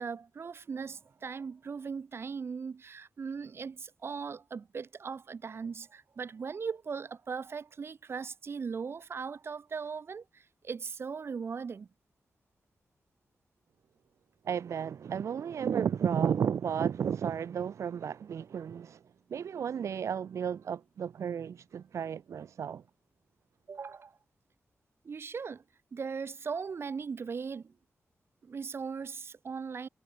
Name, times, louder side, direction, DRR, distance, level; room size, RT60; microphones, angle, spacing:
voice 1, 0.0-11.9 23.7-24.2 25.0-25.6 25.9-27.7 28.4-29.9, right 5 dB, 55° right, 2.7 m, -39 dB
voice 2, 14.4-19.0 19.3-22.8, right 8 dB, 85° right, 0.6 m, -33 dB
wide cardioid pair, 135°, 5 cm